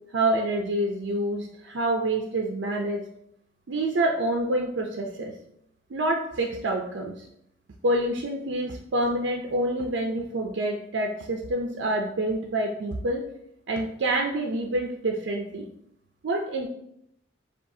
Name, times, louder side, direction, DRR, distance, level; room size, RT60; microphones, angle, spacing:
voice 1, 0.1-3.0 3.7-5.3 5.9-7.3 7.8-13.3 13.7-15.7 16.2-16.7, right 1 dB, 75° right, 1 dB, 0.5 m, -27 dB
7.0 x 2.4 x 2.7 m, 0.74 s
head